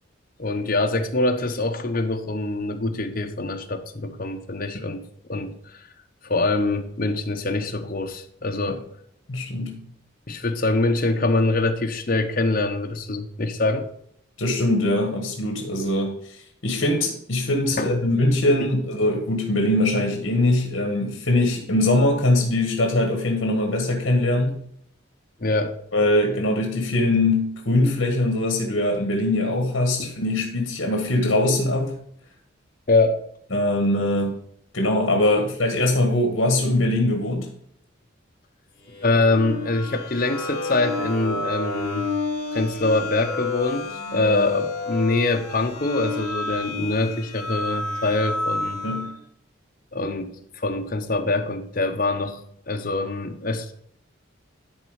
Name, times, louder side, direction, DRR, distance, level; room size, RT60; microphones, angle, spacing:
voice 1, 0.4-5.0 5.3-5.9 6.2-8.8 10.3-13.9 17.8-17.9 18.6-18.7 25.4-25.8 30.0-30.1 32.9-33.2 35.4-35.5 39.0-42.1 42.5-48.8 49.9-52.4 52.7-53.7, left 2 dB, 45° left, 5 dB, 0.9 m, -24 dB
voice 2, 9.3-9.8 14.4-24.6 25.9-31.9 33.5-34.3 34.7-37.5 48.8-49.1, left 1 dB, 70° left, 2 dB, 1.5 m, -22 dB
sound 1, 38.9-49.1, left 3 dB, 20° left, 4.2 m, -30 dB
11.5 x 4.2 x 4.9 m, 0.68 s
head